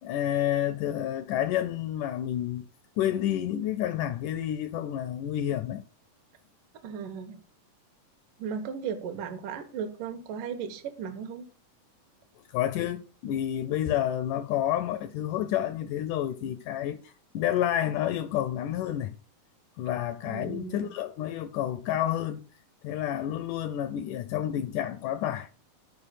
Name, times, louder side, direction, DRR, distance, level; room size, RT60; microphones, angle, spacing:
voice 1, 0.0-2.7 3.0-5.8 12.5-19.2 19.8-22.5 22.8-25.6, left 11 dB, 80° left, 1.8 m, -29 dB
voice 2, 6.8-7.4 8.4-11.5 20.2-20.9, right 7 dB, 70° right, 2.5 m, -36 dB
11.0 x 4.8 x 6.5 m
omnidirectional pair, 4.1 m